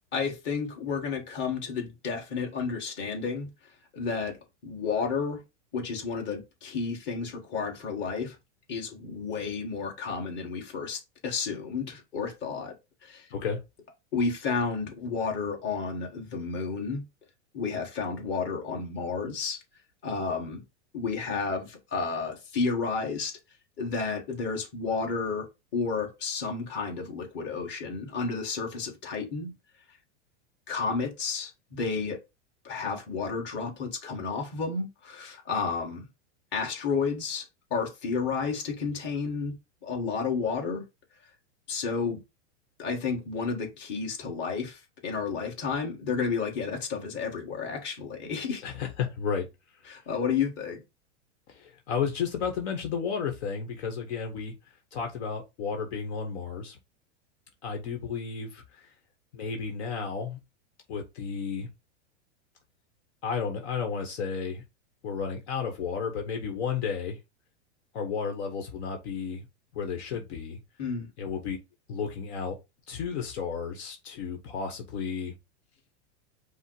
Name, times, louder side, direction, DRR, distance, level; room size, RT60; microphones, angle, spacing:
voice 1, 0.1-3.5 3.9-4.4 4.6-5.4 5.7-8.3 8.7-12.7 13.0-13.3 14.1-17.0 17.5-19.6 20.0-20.6 20.9-23.4 23.8-25.5 25.7-29.5 30.7-32.2 32.6-36.1 36.5-37.4 37.7-39.5 39.8-40.8 41.7-42.2 42.8-48.6 49.9-50.8 70.8-71.1, left 5 dB, 30° left, 1.7 m, -31 dB
voice 2, 48.6-49.5 51.5-56.8 57.6-58.9 59.3-60.4 60.9-61.7 63.2-64.6 65.0-67.2 67.9-69.5 69.7-70.6 71.2-71.6 71.9-72.6 72.9-75.3, left 6 dB, 65° left, 1.2 m, -33 dB
5.4 x 2.1 x 4.7 m
supercardioid pair, 140°, 36 cm